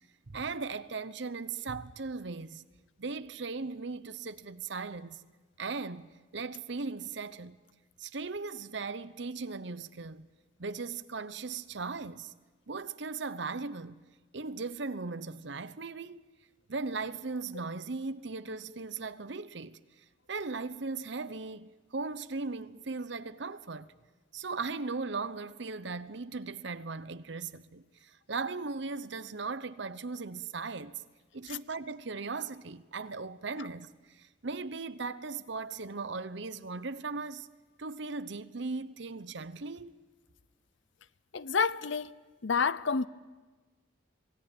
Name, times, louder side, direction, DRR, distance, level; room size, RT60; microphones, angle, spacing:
voice 1, 0.3-2.6 3.0-5.2 5.6-7.6 8.0-10.3 10.6-12.3 12.7-14.0 14.3-16.2 16.7-19.8 20.3-24.0 24.3-31.0 31.3-37.5 37.8-39.9, right 4 dB, 60° right, 0.8 m, -38 dB
voice 2, 41.3-42.1 42.4-43.1, left 5 dB, 65° left, 0.7 m, -28 dB
26.5 x 17.5 x 9.1 m
head